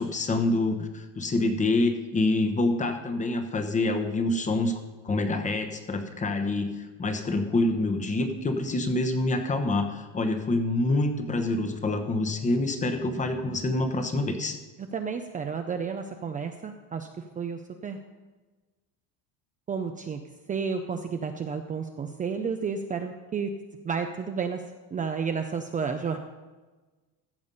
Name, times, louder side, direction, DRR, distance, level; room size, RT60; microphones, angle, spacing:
voice 1, 0.0-4.7 5.0-14.6, left 2 dB, 20° left, 7 dB, 1.1 m, -26 dB
voice 2, 14.8-17.1 17.4-18.0 19.7-20.2 20.5-23.5 23.8-24.6 24.9-26.2, right 6 dB, 20° right, 6 dB, 0.5 m, -31 dB
14.5 x 6.9 x 5.5 m, 1.2 s
cardioid pair, 145°, 36 cm